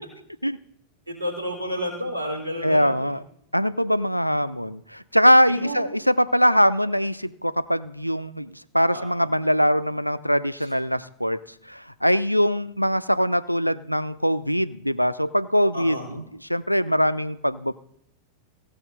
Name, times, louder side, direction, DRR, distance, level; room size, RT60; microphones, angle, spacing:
voice 1, 1.1-3.1 5.5-5.8 8.9-9.3 10.6-10.7 15.7-16.1, equal, 80° right, 1 dB, 3.9 m, -31 dB
voice 2, 2.6-3.2 3.5-11.4 11.7-17.7, equal, 90° left, 16 dB, 0.4 m, -22 dB
15.5 x 6.4 x 6.3 m, 0.76 s
figure-of-eight pair, 90°, 0 cm